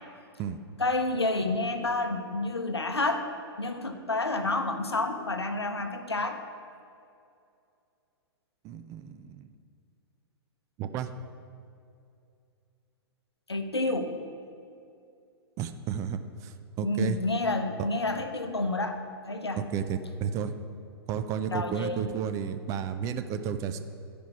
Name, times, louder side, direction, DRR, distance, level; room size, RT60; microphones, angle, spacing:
voice 1, 0.8-3.3 3.6-6.4 13.5-14.1 16.8-19.0 19.3-19.6 21.5-22.1, left 2 dB, 80° left, 7 dB, 0.7 m, -29 dB
voice 2, 8.6-9.5 10.8-11.1 15.6-17.2 17.8-17.9 19.6-20.5 21.1-23.8, right 8 dB, 25° right, 8 dB, 0.4 m, -32 dB
11.5 x 5.1 x 4.6 m, 2.5 s
figure-of-eight pair, 105°, 13 cm